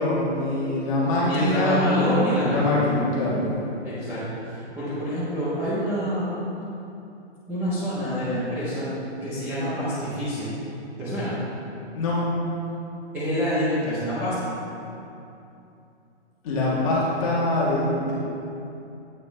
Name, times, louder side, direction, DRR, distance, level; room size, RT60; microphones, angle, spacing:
voice 1, 0.0-1.8 2.5-3.5 11.9-12.1 16.4-18.1, left 2 dB, 30° left, -6 dB, 1.6 m, -23 dB
voice 2, 1.2-2.9 3.8-6.3 7.5-8.9 9.2-10.5 11.0-11.3 13.1-14.5, equal, 5° right, -14 dB, 0.7 m, -27 dB
8.4 x 5.8 x 3.3 m, 2.7 s
hypercardioid pair, 165°, 35 cm